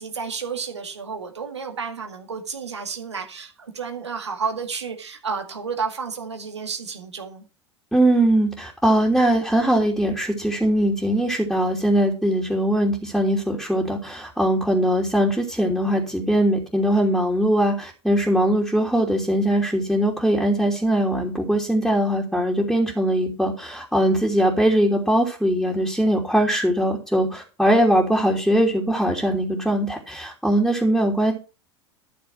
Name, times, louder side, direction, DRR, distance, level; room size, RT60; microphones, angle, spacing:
voice 1, 0.0-7.4, right 5 dB, 90° right, 4 dB, 2.1 m, -31 dB
voice 2, 7.9-31.3, right 1 dB, ahead, -2 dB, 3.1 m, -21 dB
12.5 x 6.8 x 5.9 m, 0.32 s
hypercardioid pair, 85°, 14 cm